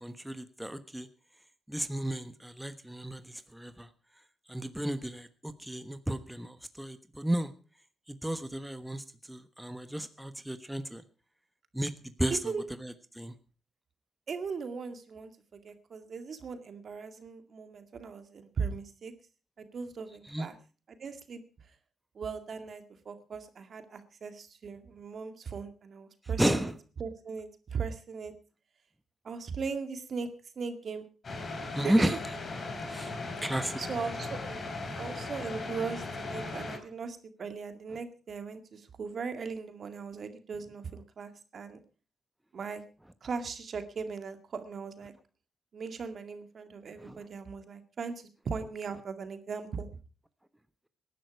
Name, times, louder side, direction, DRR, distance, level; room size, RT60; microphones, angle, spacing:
voice 1, 0.0-1.1 1.7-3.9 4.5-7.5 8.1-11.0 11.7-11.9 12.2-12.5 12.8-13.3 20.2-20.5 26.4-26.8 31.7-32.2 32.9-33.8 47.0-47.2, right 1 dB, 5° right, 10 dB, 1.3 m, -33 dB
voice 2, 14.3-19.1 19.6-20.5 20.9-21.4 22.1-26.7 27.0-28.3 29.2-30.3 30.6-31.1 31.8-32.2 33.8-34.4 35.0-41.8 42.5-42.8 43.2-45.1 45.7-49.9, right 5 dB, 60° right, 8 dB, 2.1 m, -38 dB
sound 1, 31.2-36.8, left 3 dB, 50° left, 4.1 m, -38 dB
18.5 x 11.0 x 4.7 m, 0.36 s
cardioid pair, 65°, 0 cm